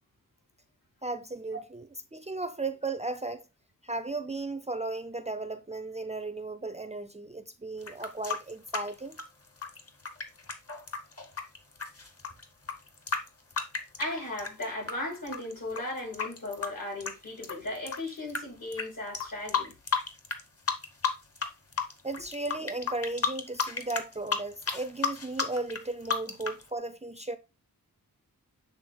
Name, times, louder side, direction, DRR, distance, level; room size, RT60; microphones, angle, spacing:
voice 1, 1.0-1.9 2.1-3.4 3.8-9.2 22.0-27.4, right 2 dB, 20° right, 0.5 m, -35 dB
sound 1, 7.8-14.9 15.3-18.4 18.7-18.8 19.1-20.4 20.7-21.5 21.7-26.6, left 5 dB, 40° left, 1.2 m, -32 dB
voice 2, 14.0-19.7, left 2 dB, 70° left, 4.3 m, -36 dB
7.8 x 3.6 x 3.5 m
wide cardioid pair, 75°, 35 cm